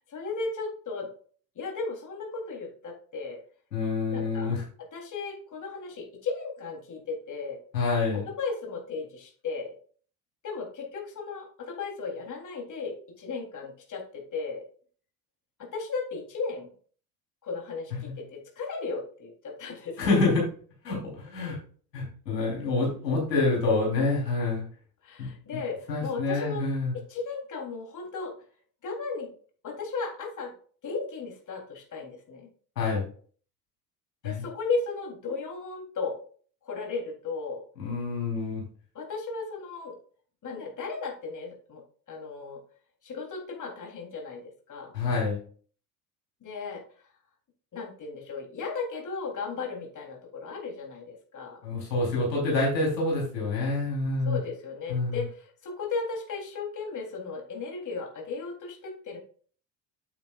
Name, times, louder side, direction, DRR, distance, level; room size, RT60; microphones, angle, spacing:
voice 1, 0.1-1.1 1.6-3.4 4.1-4.6 4.9-7.6 8.4-9.8 10.4-14.6 15.6-16.7 17.4-20.0 25.0-26.6 26.9-28.3 28.8-29.3 29.6-30.5 30.8-32.5 34.2-36.1 36.6-37.6 38.9-40.0 40.4-41.8 42.1-42.6 43.0-44.9 46.4-46.8 47.7-51.6 54.3-59.2, left 4 dB, 40° left, 0 dB, 3.7 m, -35 dB
voice 2, 3.7-4.6 7.7-8.2 18.0-18.1 20.0-20.4 20.8-21.6 21.9-24.6 25.2-25.3 25.9-26.9 32.8-33.0 34.2-34.4 37.8-38.6 44.9-45.4 51.6-54.4 54.9-55.2, left 3 dB, 85° left, -3 dB, 4.3 m, -27 dB
9.0 x 9.0 x 2.5 m, 0.43 s
hypercardioid pair, 65°, 48 cm